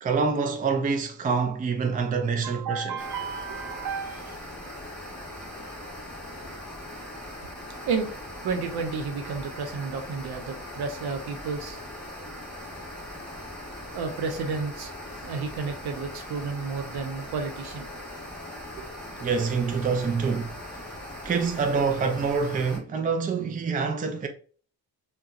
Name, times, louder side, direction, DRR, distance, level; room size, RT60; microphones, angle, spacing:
voice 1, 0.0-3.0 19.2-20.5 21.2-24.3, right 5 dB, 25° right, 0.4 m, -26 dB
voice 2, 2.4-4.4 7.9-8.1 8.4-11.8 13.9-14.9 15.2-17.8 18.8-18.9, right 5 dB, 75° right, 0.8 m, -32 dB
sound 1, 3.0-22.8, left 1 dB, ahead, 1.3 m, -40 dB
3.9 x 2.3 x 2.4 m
cardioid pair, 120°, 38 cm